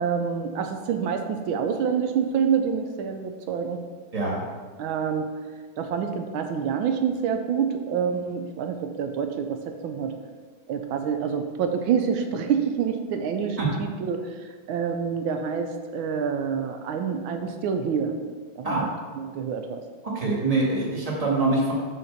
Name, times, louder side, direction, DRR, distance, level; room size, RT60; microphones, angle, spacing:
voice 1, 0.0-3.8 4.8-5.3 5.8-10.1 10.7-14.2 14.7-18.1 18.6-18.9 19.2-19.8, right 7 dB, 90° right, 6 dB, 1.5 m, -27 dB
voice 2, 20.0-21.7, right 3 dB, 20° right, -4 dB, 1.6 m, -24 dB
6.5 x 4.4 x 6.5 m, 1.5 s
omnidirectional pair, 2.2 m